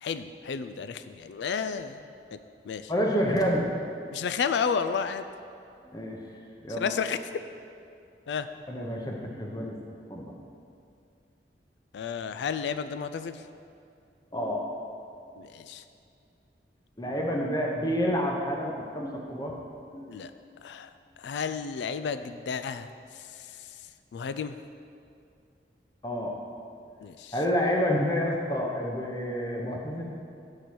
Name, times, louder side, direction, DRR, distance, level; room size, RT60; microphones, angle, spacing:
voice 1, 0.0-2.0 2.3-2.4 2.6-2.9 4.1-5.3 6.7-7.2 8.3-8.5 11.9-13.4 15.4-15.8 20.1-20.3 20.6-20.9 21.2-23.7 24.1-24.6 27.0-27.4, left 6 dB, 85° left, 11 dB, 0.3 m, -32 dB
voice 2, 2.9-3.7 5.8-6.3 6.6-6.9 8.7-10.3 14.3-14.6 17.0-19.5 19.9-20.2 26.0-26.4 27.3-30.1, equal, 20° left, -1 dB, 0.8 m, -29 dB
6.7 x 4.3 x 6.2 m, 2.5 s
head